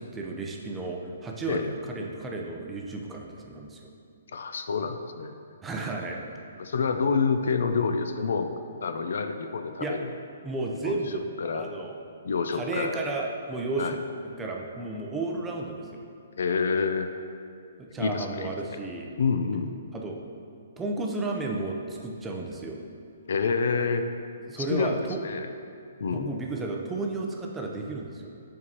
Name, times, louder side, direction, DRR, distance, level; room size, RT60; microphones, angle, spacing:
voice 1, 0.0-3.9 5.6-6.2 9.8-10.0 10.4-11.3 11.5-12.0 12.5-14.0 14.4-16.1 17.8-19.1 19.9-20.2 20.8-22.8 24.5-25.2 26.1-28.3, right 3 dB, 15° right, 0 dB, 0.6 m, -33 dB
voice 2, 4.3-5.3 6.6-8.5 8.8-10.1 10.8-11.0 11.4-11.7 12.2-13.0 13.8-14.0 16.4-17.1 18.0-18.8 19.2-19.7 23.3-24.1 24.6-25.5 26.0-26.3, left 5 dB, 70° left, 7 dB, 0.4 m, -28 dB
7.1 x 4.6 x 2.9 m, 2.5 s
hypercardioid pair, 140°, 0 cm